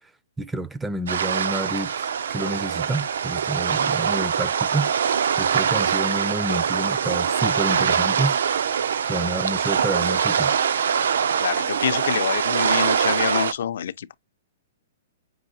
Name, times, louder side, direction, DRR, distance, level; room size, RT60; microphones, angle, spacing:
voice 1, 0.4-4.9 5.3-8.4 9.1-10.5, right 1 dB, 5° right, 0.4 m, -29 dB
sound 1, 1.1-13.5, right 7 dB, 80° right, 0.4 m, -23 dB
voice 2, 11.4-14.1, left 9 dB, 65° left, 0.5 m, -26 dB
5.5 x 2.8 x 2.7 m
hypercardioid pair, 155°, 0 cm